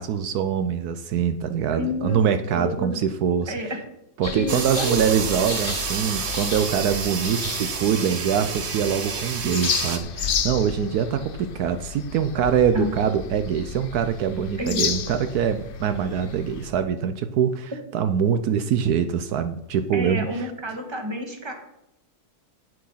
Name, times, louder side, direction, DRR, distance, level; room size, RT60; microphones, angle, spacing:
voice 1, 0.0-3.5 4.2-20.5, right 8 dB, 75° right, 10 dB, 1.2 m, -24 dB
voice 2, 1.7-2.2 2.5-3.0 3.5-3.7 4.3-5.0 12.7-12.9 14.6-15.1 19.9-21.5, left 1 dB, 15° right, 4 dB, 1.6 m, -29 dB
sound 1, 4.2-16.7, left 7 dB, 50° left, 0.6 m, -33 dB
sound 2, 4.5-10.0, right 5 dB, 45° right, 1.2 m, -29 dB
9.3 x 8.5 x 5.7 m, 0.84 s
omnidirectional pair, 1.7 m